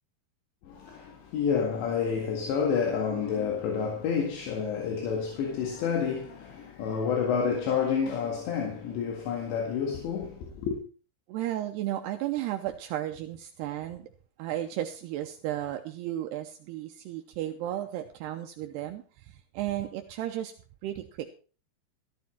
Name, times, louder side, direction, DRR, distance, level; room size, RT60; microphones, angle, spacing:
voice 1, 0.6-10.8, left 6 dB, 80° left, 4.2 m, -29 dB
voice 2, 11.3-14.1 14.4-20.5 20.8-21.3, right 13 dB, 80° right, 2.7 m, -34 dB
14.0 x 11.5 x 4.4 m
omnidirectional pair, 5.1 m